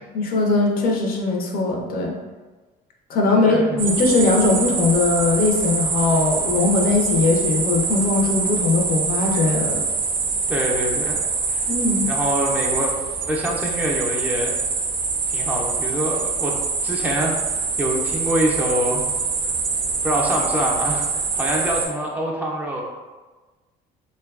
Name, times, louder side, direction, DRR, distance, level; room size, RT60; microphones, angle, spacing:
voice 1, 0.1-2.1 3.1-9.8 11.7-12.1, left 3 dB, 60° left, 1 dB, 0.5 m, -20 dB
voice 2, 3.4-3.8 10.5-11.2 11.5-11.7 12.0-12.9 13.3-14.6 15.3-16.6 16.8-19.0 20.0-22.8, equal, 10° right, -3 dB, 0.4 m, -25 dB
sound 1, 3.8-21.9, right 4 dB, 90° right, 0.4 m, -24 dB
2.5 x 2.2 x 2.3 m, 1.3 s
cardioid pair, 110°, 17 cm